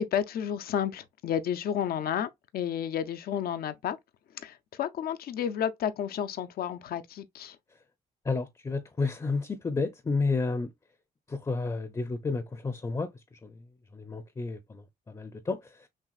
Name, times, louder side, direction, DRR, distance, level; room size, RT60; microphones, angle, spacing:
voice 1, 0.0-4.0 4.3-7.6, left 9 dB, 70° left, 0.5 m, -31 dB
voice 2, 8.2-10.7 11.3-13.1 13.4-13.6 13.9-15.9, left 3 dB, 20° left, 0.6 m, -31 dB
6.0 x 2.4 x 2.3 m
cardioid pair, 90°, 16 cm